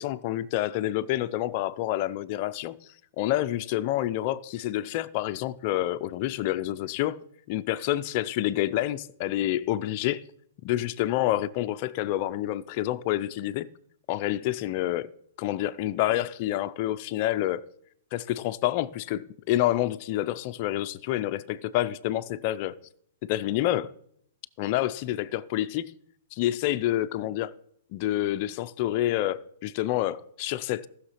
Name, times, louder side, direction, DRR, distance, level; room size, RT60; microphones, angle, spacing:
voice 1, 0.0-2.8 3.2-7.2 7.5-10.2 10.6-13.7 14.1-15.1 15.4-17.6 18.1-22.7 23.3-23.9 24.6-25.9 26.3-27.5 27.9-30.9, left 14 dB, 35° left, 0.5 m, -28 dB
14.5 x 6.4 x 5.8 m
hypercardioid pair, 160°, 0 cm